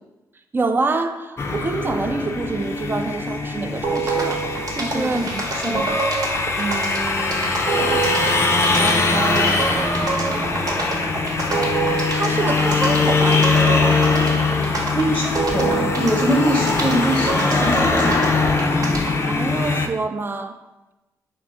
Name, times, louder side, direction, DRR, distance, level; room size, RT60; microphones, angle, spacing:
voice 1, 0.5-5.2 5.7-5.8 6.6-8.0 8.7-9.7 12.1-13.6 19.0-20.6, right 3 dB, 30° right, 8 dB, 0.3 m, -27 dB
sound 1, 1.4-19.9, left 3 dB, 35° left, 0.4 m, -22 dB
sound 2, 3.8-19.2, right 3 dB, 55° right, 0.9 m, -27 dB
voice 2, 4.8-5.9 14.9-18.2, right 1 dB, ahead, -3 dB, 0.8 m, -23 dB
sound 3, 7.4-19.0, right 2 dB, 90° right, 0.5 m, -38 dB
3.2 x 2.2 x 4.2 m, 1.0 s
supercardioid pair, 55°, 7 cm